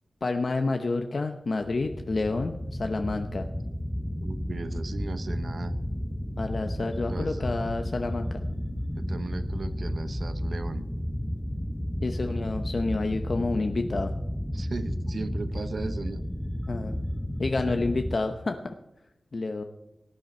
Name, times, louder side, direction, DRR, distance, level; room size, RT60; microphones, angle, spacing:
voice 1, 0.2-3.5 6.4-8.4 12.0-14.1 16.7-17.0 17.4-18.6 19.3-19.6, left 3 dB, 50° left, 5 dB, 0.8 m, -29 dB
sound 1, 1.6-18.2, equal, 5° left, 0.8 m, -32 dB
voice 2, 4.2-5.7 7.1-7.4 9.0-10.9 14.5-16.2 17.7-17.8, right 3 dB, 60° right, 11 dB, 0.9 m, -36 dB
18.0 x 11.0 x 4.4 m, 0.91 s
wide cardioid pair, 120°, 0 cm